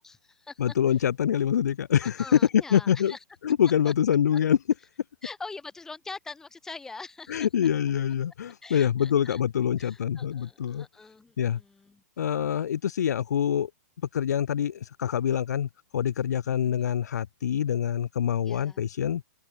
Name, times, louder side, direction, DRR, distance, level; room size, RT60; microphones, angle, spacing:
voice 1, 0.0-0.6 2.0-3.2 3.8-3.9 5.2-7.5 8.6-9.4 9.8-12.0 16.6-16.8 18.4-18.8, left 3 dB, 5° left, 3.9 m, -43 dB
voice 2, 0.6-2.4 2.7-3.1 3.4-4.6 7.3-10.9 11.4-11.6 12.2-13.7 14.1-19.2, left 9 dB, 70° left, 3.7 m, -25 dB
hypercardioid pair, 175°, 10 cm